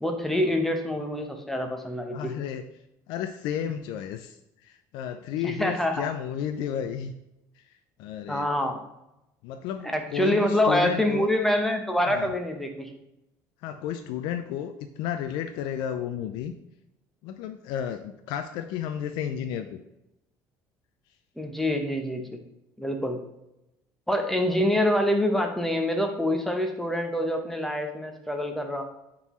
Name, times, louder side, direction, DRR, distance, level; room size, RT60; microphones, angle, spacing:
voice 1, 0.0-2.3 5.4-6.1 8.3-8.8 9.8-12.9 21.4-22.4 22.8-23.2 24.1-28.8, left 1 dB, 5° left, 4 dB, 0.8 m, -26 dB
voice 2, 2.1-2.6 3.1-4.4 4.6-7.1 8.0-8.5 9.4-11.3 12.1-12.3 13.6-16.5 17.2-19.8, left 9 dB, 75° left, 7 dB, 0.4 m, -32 dB
9.6 x 3.7 x 3.1 m, 0.89 s
cardioid pair, 130°, 8 cm